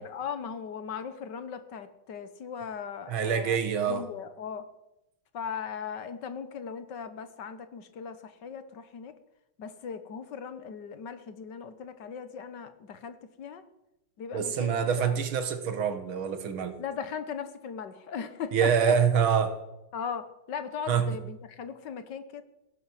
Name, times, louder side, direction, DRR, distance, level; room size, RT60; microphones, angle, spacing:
voice 1, 0.0-3.6 3.9-4.7 5.3-9.1 9.6-13.6 14.2-15.1 16.8-19.0 19.9-22.4, left 7 dB, 65° left, 11 dB, 1.7 m, -38 dB
voice 2, 3.1-4.0 14.3-16.8 18.5-19.6 20.9-21.1, right 7 dB, 90° right, 9 dB, 2.3 m, -26 dB
17.0 x 11.0 x 7.4 m, 0.92 s
omnidirectional pair, 2.2 m